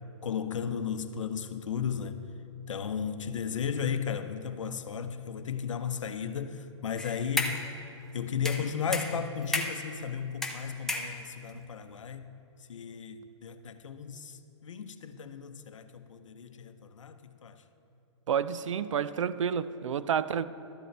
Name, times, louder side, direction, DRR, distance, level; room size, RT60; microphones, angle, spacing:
voice 1, 0.2-2.2 2.7-7.6 8.1-12.3 12.7-17.6, left 7 dB, 85° left, 0.7 m, -35 dB
sound 1, 7.0-7.7 8.5-9.9 10.4-11.5, left 2 dB, ahead, 0.6 m, -33 dB
voice 2, 18.3-20.5, right 8 dB, 85° right, 0.4 m, -29 dB
12.5 x 7.8 x 3.3 m
hypercardioid pair, 140°, 16 cm